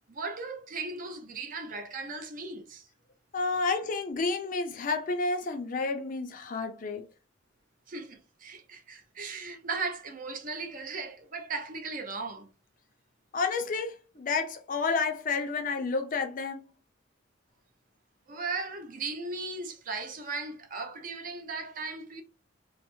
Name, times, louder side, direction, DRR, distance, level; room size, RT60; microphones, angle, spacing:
voice 1, 0.1-2.9 3.4-3.8 7.9-12.5 18.3-22.2, right 3 dB, 45° right, 0.5 m, -37 dB
voice 2, 3.3-7.0 13.3-16.7, left 4 dB, 40° left, 0.4 m, -30 dB
3.1 x 2.0 x 3.0 m
head